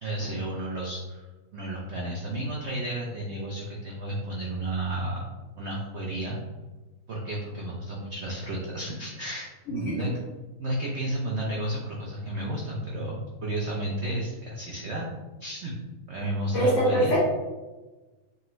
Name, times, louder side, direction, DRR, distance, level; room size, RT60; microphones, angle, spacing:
voice 1, 0.0-1.2 1.5-5.3 5.6-6.4 7.1-10.1 10.6-15.1 15.4-15.7 16.1-17.1, right 1 dB, 90° right, -3 dB, 0.6 m, -32 dB
voice 2, 16.5-17.2, equal, 45° left, -11 dB, 1.7 m, -23 dB
5.2 x 2.5 x 3.0 m, 1.2 s
omnidirectional pair, 2.0 m